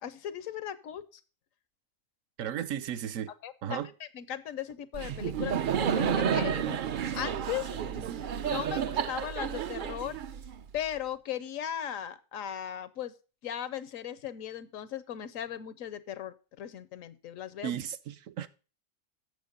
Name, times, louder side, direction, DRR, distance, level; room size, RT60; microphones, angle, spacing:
voice 1, 0.0-1.2 3.4-5.6 5.9-6.8 7.1-8.2 8.5-10.2 10.7-13.1 13.4-17.8, left 10 dB, 85° left, 1.1 m, -38 dB
voice 2, 2.4-3.3 3.6-3.9 8.1-8.2 17.6-18.5, right 10 dB, 80° right, 1.1 m, -35 dB
Laughter, 4.9-10.8, right 8 dB, 60° right, 0.5 m, -31 dB
8.1 x 7.0 x 5.2 m
omnidirectional pair, 1.3 m